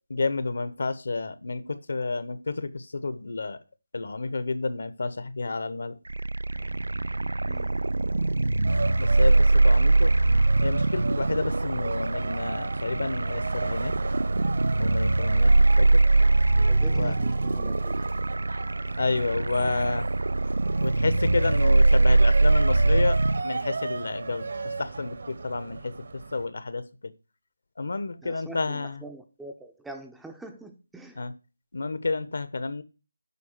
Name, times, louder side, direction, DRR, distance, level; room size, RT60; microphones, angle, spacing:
voice 1, 0.1-3.6 3.9-6.0 9.0-10.1 10.6-13.9 14.8-16.0 16.9-17.2 19.0-20.1 20.8-26.8 27.8-29.1 31.2-31.3 31.7-32.8, left 3 dB, 65° left, 1.1 m, -30 dB
sound 1, 6.1-23.4, right 2 dB, 90° right, 0.4 m, -22 dB
voice 2, 7.5-7.9 16.7-18.1 28.2-31.2, right 2 dB, ahead, 0.6 m, -44 dB
sound 2, 8.6-26.5, right 4 dB, 60° right, 1.3 m, -36 dB
8.3 x 4.9 x 6.6 m
figure-of-eight pair, 170°, 0 cm